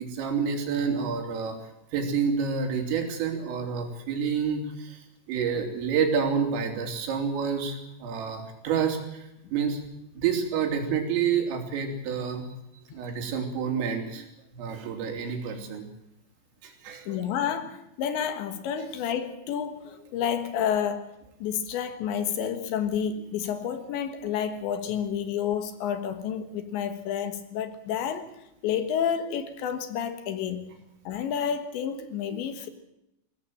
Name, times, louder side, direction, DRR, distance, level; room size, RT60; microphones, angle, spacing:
voice 1, 0.0-1.6 1.9-5.0 5.3-9.3 9.5-9.8 10.2-12.5 12.9-14.3 14.5-15.9 16.6-17.2, right 6 dB, 80° right, 4 dB, 5.7 m, -28 dB
voice 2, 17.1-21.2 21.4-28.3 28.6-30.7 31.1-32.7, left 8 dB, 70° left, 9 dB, 3.5 m, -30 dB
22.0 x 17.5 x 7.7 m, 0.88 s
omnidirectional pair, 5.8 m